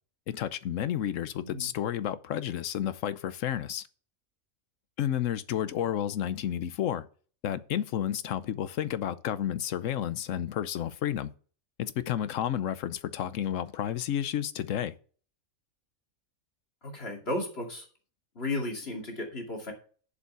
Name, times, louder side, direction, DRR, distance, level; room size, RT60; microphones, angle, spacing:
voice 1, 0.3-3.8 5.0-7.1 7.4-11.3 11.8-14.9, left 10 dB, 70° left, 1.1 m, -31 dB
voice 2, 16.8-17.9 18.3-19.7, left 2 dB, 45° left, 2.8 m, -34 dB
7.2 x 6.9 x 8.1 m
omnidirectional pair, 1.4 m